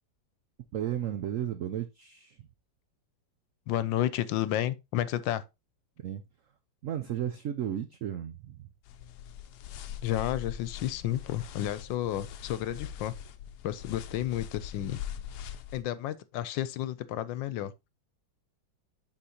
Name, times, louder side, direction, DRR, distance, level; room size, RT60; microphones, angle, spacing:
voice 1, 0.7-2.4 6.0-6.2 6.8-8.7, right 10 dB, 85° right, 0.7 m, -34 dB
voice 2, 3.7-5.4 10.0-13.1 13.6-15.0 15.7-17.7, left 12 dB, 90° left, 1.4 m, -31 dB
sound 1, 8.8-15.8, left 10 dB, 70° left, 1.1 m, -42 dB
9.9 x 4.2 x 2.8 m
omnidirectional pair, 2.0 m